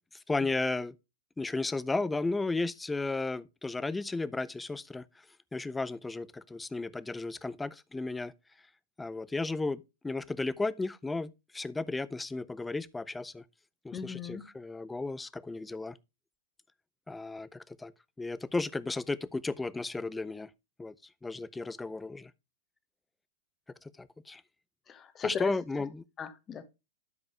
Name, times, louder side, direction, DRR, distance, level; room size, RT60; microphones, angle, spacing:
voice 1, 0.3-0.9 1.4-5.1 5.5-8.3 9.0-13.4 13.8-16.0 17.1-17.9 18.2-20.5 20.8-20.9 21.2-22.3 24.0-24.4 25.2-26.0, left 3 dB, 10° left, 0.5 m, -34 dB
voice 2, 13.9-14.4 24.9-25.5 26.2-26.7, left 7 dB, 25° left, 1.2 m, -36 dB
12.0 x 5.0 x 3.3 m
hypercardioid pair, 105°, 0 cm